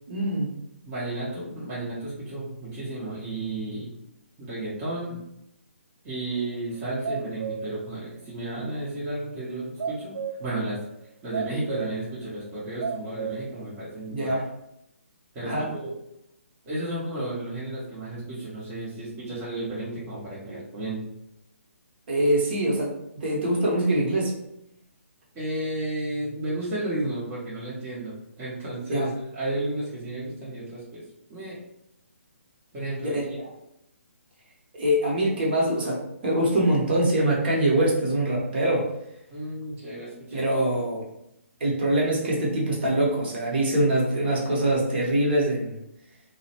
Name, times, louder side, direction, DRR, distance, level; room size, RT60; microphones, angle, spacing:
voice 1, 0.1-0.5 14.1-14.4 15.4-15.7 22.1-24.3 28.9-29.1 33.0-33.2 34.7-38.9 40.3-41.1 41.6-45.8, right 1 dB, 45° right, -4 dB, 0.9 m, -24 dB
voice 2, 0.9-3.9 4.4-5.2 6.0-10.8 11.2-14.3 15.3-15.9 16.6-21.1 25.3-31.0 31.3-31.6 32.7-33.4 39.3-40.5, right 2 dB, 20° right, -9 dB, 0.7 m, -33 dB
sound 1, 6.7-7.7 8.1-8.2 9.8-10.5 11.3-12.1 12.4-12.5 12.8-13.6 13.9-14.0, right 6 dB, 65° right, 0.4 m, -33 dB
2.4 x 2.0 x 2.8 m, 0.81 s
figure-of-eight pair, 145°, 7 cm